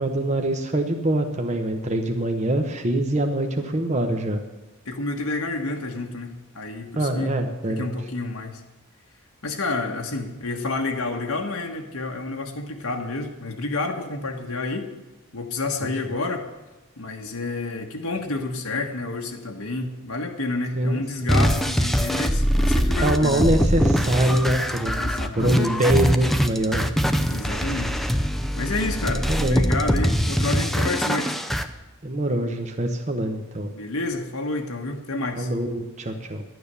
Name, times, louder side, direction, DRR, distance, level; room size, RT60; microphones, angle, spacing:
voice 1, 0.0-4.4 6.9-7.9 15.8-15.9 20.8-21.3 23.0-25.0 25.4-26.9 29.1-29.6 32.0-33.7 35.4-36.4, right 1 dB, 35° right, 4 dB, 1.0 m, -24 dB
voice 2, 4.8-7.3 7.7-8.6 9.4-14.9 15.3-16.5 17.0-23.5 25.0-25.7 27.3-28.0 28.5-31.4 33.7-35.5, left 3 dB, 80° left, 2 dB, 1.4 m, -29 dB
sound 1, 21.3-31.6, equal, ahead, 0.6 m, -23 dB
12.0 x 9.4 x 6.8 m, 1.1 s
head